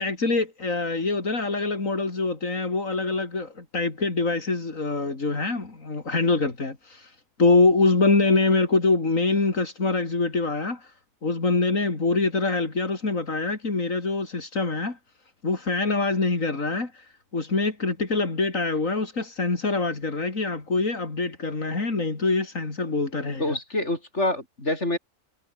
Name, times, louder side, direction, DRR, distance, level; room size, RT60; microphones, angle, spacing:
voice 1, 0.0-10.9 11.2-15.0 15.4-23.6, left 3 dB, 85° left, 4.0 m, -24 dB
voice 2, 23.4-25.0, left 1 dB, 60° left, 7.8 m, -26 dB
omnidirectional pair, 1.3 m